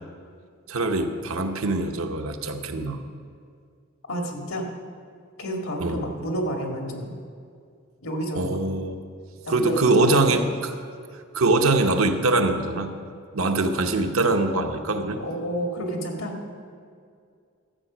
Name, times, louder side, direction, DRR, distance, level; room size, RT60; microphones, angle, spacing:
voice 1, 0.7-3.0 5.8-6.0 8.3-9.0 9.5-10.7 11.3-13.0 13.3-15.2, right 2 dB, 90° right, 5 dB, 1.0 m, -23 dB
voice 2, 4.1-4.7 5.4-7.2 8.0-8.6 9.4-10.5 15.2-16.3, equal, 90° left, 2 dB, 1.9 m, -30 dB
13.0 x 8.0 x 6.1 m, 2.2 s
head